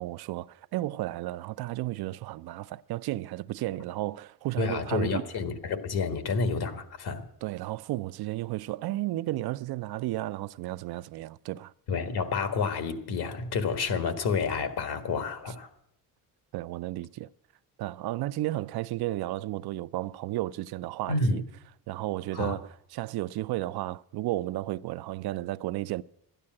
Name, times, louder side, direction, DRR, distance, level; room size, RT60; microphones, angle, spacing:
voice 1, 0.0-5.3 7.4-11.7 16.5-17.3 17.8-21.4 21.9-26.0, right 16 dB, 75° right, 0.5 m, -33 dB
voice 2, 4.6-7.3 11.9-15.7 21.1-21.4 22.3-22.5, left 4 dB, 75° left, 1.6 m, -29 dB
12.5 x 10.0 x 7.6 m
cardioid pair, 110°, 39 cm